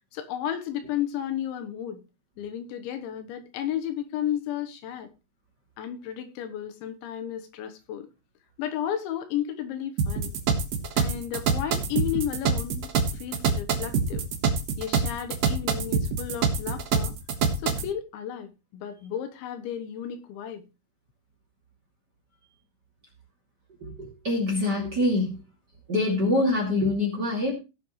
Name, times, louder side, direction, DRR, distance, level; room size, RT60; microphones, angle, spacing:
voice 1, 0.1-2.0 2.4-5.1 5.8-8.1 8.6-10.3 11.0-14.2 14.8-17.1 17.6-20.6, left 10 dB, 80° left, 3.4 m, -33 dB
sound 1, 10.0-17.9, right 5 dB, 70° right, 1.6 m, -25 dB
voice 2, 23.8-25.4 25.9-27.5, left 2 dB, 30° right, 2.3 m, -25 dB
16.5 x 7.6 x 3.1 m
omnidirectional pair, 5.3 m